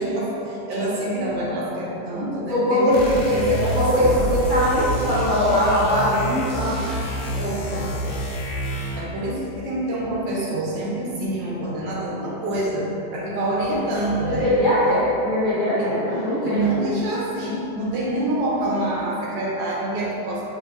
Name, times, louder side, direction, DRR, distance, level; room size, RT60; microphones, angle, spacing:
voice 1, 0.0-3.0 3.3-4.2 7.4-7.9 9.0-14.5 15.8-16.0 16.4-20.4, right 1 dB, 85° right, -5 dB, 1.6 m, -26 dB
voice 2, 2.5-6.7 14.2-16.6, equal, 50° left, -13 dB, 0.6 m, -21 dB
sound 1, 2.9-9.2, equal, 85° left, 1.4 m, -28 dB
5.9 x 2.7 x 2.6 m, 2.9 s
omnidirectional pair, 1.9 m